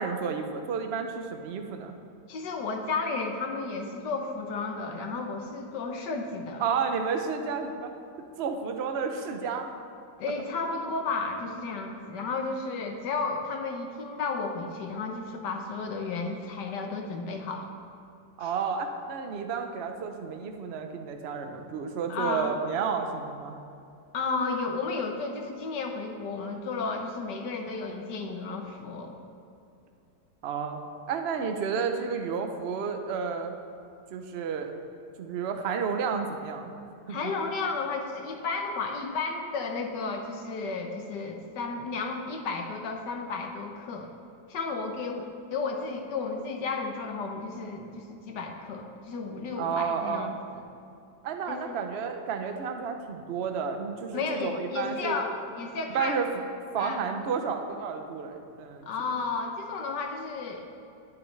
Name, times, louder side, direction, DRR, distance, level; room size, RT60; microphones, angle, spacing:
voice 1, 0.0-2.0 6.6-7.9 8.4-9.7 18.4-23.6 30.4-30.8 31.1-33.5 34.1-34.7 35.2-36.7 37.1-37.2 49.6-50.3 51.2-55.3 55.9-56.3 56.7-58.9, right 6 dB, 55° right, 5 dB, 0.7 m, -31 dB
voice 2, 2.3-6.6 10.2-17.7 18.4-18.5 22.1-22.6 24.1-29.2 37.1-44.1 44.5-50.6 51.5-51.7 54.1-56.2 56.8-57.0 58.9-60.8, left 4 dB, 65° left, 3 dB, 1.5 m, -33 dB
20.0 x 7.1 x 3.3 m, 2.7 s
omnidirectional pair, 2.1 m